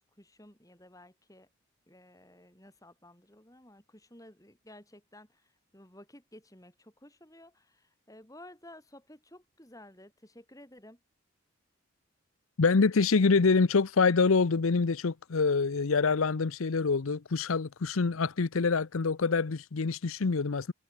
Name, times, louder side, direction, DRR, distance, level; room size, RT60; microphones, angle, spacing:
voice 1, 0.0-1.5 1.9-11.0, left 1 dB, 15° left, 6.0 m, -54 dB
voice 2, 12.6-20.7, left 4 dB, 80° left, 0.7 m, -26 dB
head